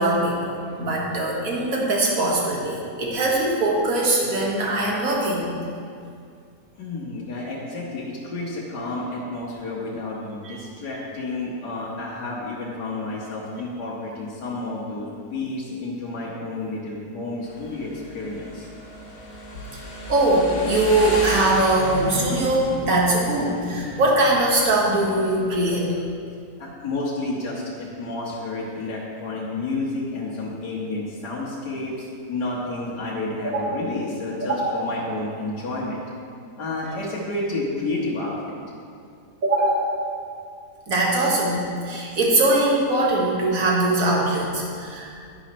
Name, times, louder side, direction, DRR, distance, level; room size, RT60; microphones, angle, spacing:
voice 1, 0.0-5.5 10.4-10.6 20.1-25.9 33.4-33.6 34.4-34.9 39.4-39.9 40.9-45.1, right 2 dB, 60° right, -3 dB, 2.0 m, -21 dB
voice 2, 6.8-18.7 26.6-36.0 36.6-38.6, left 2 dB, 80° left, -5 dB, 1.8 m, -30 dB
Motorcycle, 17.4-25.7, left 1 dB, 60° left, 1.7 m, -34 dB
10.5 x 10.0 x 3.1 m, 2.3 s
omnidirectional pair, 1.7 m